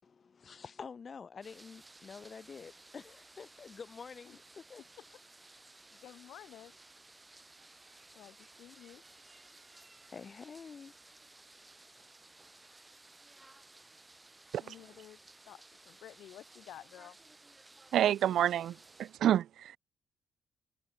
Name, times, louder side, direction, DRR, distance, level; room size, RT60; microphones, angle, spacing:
voice 1, 0.0-4.8 10.1-10.9, left 5 dB, 40° left, 7.7 m, -48 dB
sound 1, 1.4-19.2, right 2 dB, 15° right, 4.7 m, -58 dB
voice 2, 5.9-6.7 8.1-9.0 14.6-15.2 15.5-17.2, left 12 dB, 75° left, 4.0 m, -52 dB
voice 3, 17.9-19.8, right 11 dB, 70° right, 0.7 m, -28 dB
cardioid pair, 90°, 0 cm